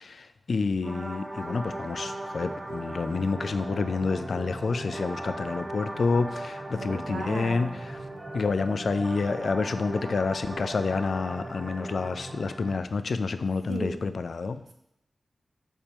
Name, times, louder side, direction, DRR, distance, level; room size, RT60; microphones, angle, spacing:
voice 1, 0.0-8.0 8.3-14.6, left 4 dB, 65° left, 11 dB, 0.4 m, -28 dB
sound 1, 0.8-12.8, right 1 dB, 20° right, 0.8 m, -38 dB
voice 2, 6.8-7.8 13.7-14.0, right 3 dB, 55° right, 1 dB, 1.1 m, -35 dB
6.8 x 5.4 x 3.0 m, 0.81 s
wide cardioid pair, 120°, 0 cm